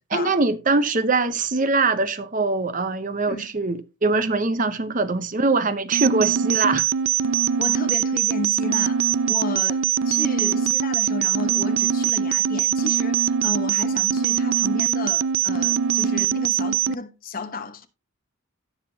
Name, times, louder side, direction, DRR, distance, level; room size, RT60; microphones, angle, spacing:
voice 1, 0.1-6.9, right 3 dB, 35° right, 0.8 m, -22 dB
sound 1, 5.9-16.9, right 9 dB, 60° right, 0.4 m, -22 dB
voice 2, 7.6-17.9, left 3 dB, 40° left, 1.0 m, -33 dB
17.0 x 5.9 x 2.8 m
head